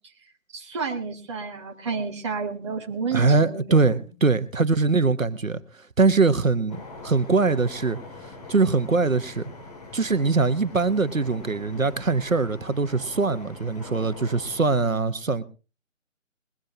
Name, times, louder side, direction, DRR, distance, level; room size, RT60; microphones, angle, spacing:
voice 1, 0.5-3.8, right 5 dB, 20° right, 1.5 m, -30 dB
voice 2, 3.1-5.6 6.0-8.0 8.5-9.5 9.9-15.4, right 4 dB, 85° right, 1.3 m, -22 dB
Bangkok Underground Train to Silom Station, 6.7-14.8, left 2 dB, 30° left, 2.5 m, -42 dB
21.5 x 14.5 x 2.9 m
figure-of-eight pair, 155°, 39 cm